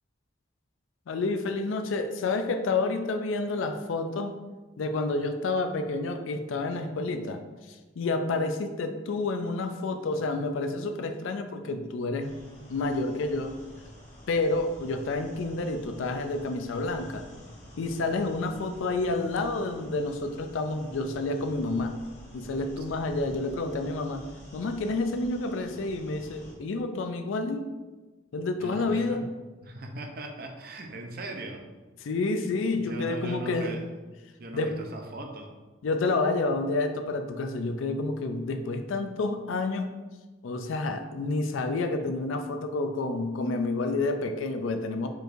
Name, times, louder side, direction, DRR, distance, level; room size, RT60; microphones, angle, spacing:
voice 1, 1.1-4.3 4.8-7.4 7.7-12.4 12.7-13.6 14.3-17.2 17.8-21.9 22.3-24.3 24.5-27.7 28.3-29.3 32.0-33.8 34.5-34.8 35.8-39.9 40.4-45.1, left 3 dB, 85° left, 6 dB, 0.4 m, -29 dB
sound 1, 12.2-26.5, equal, 35° left, 1.0 m, -49 dB
voice 2, 28.6-29.2 29.6-31.6 32.7-33.9 34.4-35.5, right 1 dB, 50° right, 3 dB, 0.6 m, -39 dB
4.6 x 4.4 x 2.6 m, 1.2 s
head